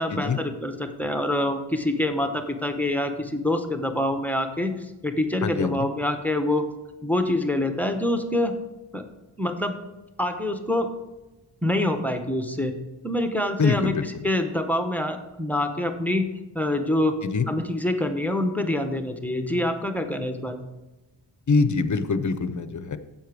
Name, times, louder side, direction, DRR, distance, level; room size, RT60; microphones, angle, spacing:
voice 1, 0.0-4.7 5.0-6.6 7.0-8.5 8.9-9.0 9.4-9.8 10.2-10.9 11.6-12.7 13.0-16.3 16.5-17.1 17.5-20.6, left 1 dB, 5° left, 6 dB, 0.8 m, -26 dB
voice 2, 5.4-5.9 13.6-14.2 17.2-17.5 21.5-23.0, left 4 dB, 40° left, 12 dB, 0.6 m, -24 dB
10.0 x 7.7 x 4.7 m, 1.1 s
wide cardioid pair, 155°, 48 cm